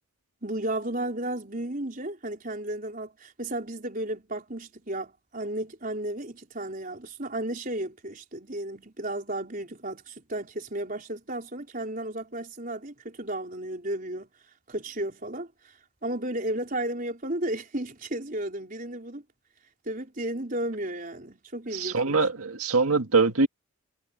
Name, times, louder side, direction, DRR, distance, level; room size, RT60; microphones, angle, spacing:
voice 1, 0.4-14.3 14.7-15.5 16.0-19.2 19.8-22.2, right 1 dB, 40° right, 4.7 m, -33 dB
voice 2, 21.7-23.5, right 4 dB, 85° right, 1.9 m, -23 dB
head